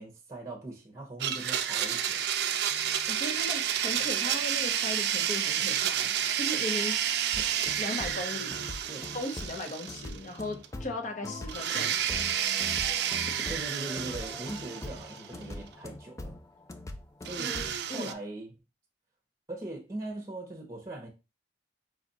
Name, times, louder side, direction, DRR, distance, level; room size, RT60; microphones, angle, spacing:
voice 1, 0.0-2.2 7.4-7.5 8.9-9.1 13.5-16.4 17.2-17.6 17.9-18.5 19.5-21.1, right 2 dB, 15° right, 0.9 m, -40 dB
Domestic sounds home sounds, 1.2-10.4 10.6-10.7 11.5-15.4 17.2-18.1, right 9 dB, 60° right, 0.4 m, -30 dB
voice 2, 2.7-7.1 7.8-8.6 9.1-12.0 13.3-13.5 17.4-18.1, left 1 dB, 40° left, 0.9 m, -37 dB
sound 1, 7.3-17.8, left 2 dB, 15° left, 0.4 m, -42 dB
5.1 x 2.5 x 3.9 m
head